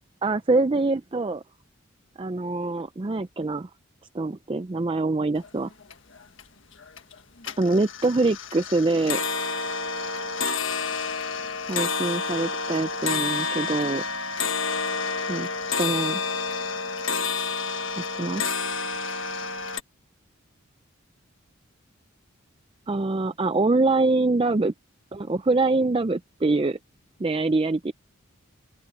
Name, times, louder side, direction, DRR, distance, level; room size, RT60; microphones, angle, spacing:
voice 1, 0.2-1.4 2.2-3.7 4.1-5.7 7.6-9.2 11.7-14.0 15.3-15.5 15.8-16.2 18.0-18.4 22.9-24.7 25.1-26.8 27.2-27.9, right 3 dB, 25° right, 0.4 m, -24 dB
sound 1, 5.4-5.5 5.8-6.4 6.8-7.1 7.4-19.8, left 4 dB, 65° left, 1.6 m, -29 dB
open air
head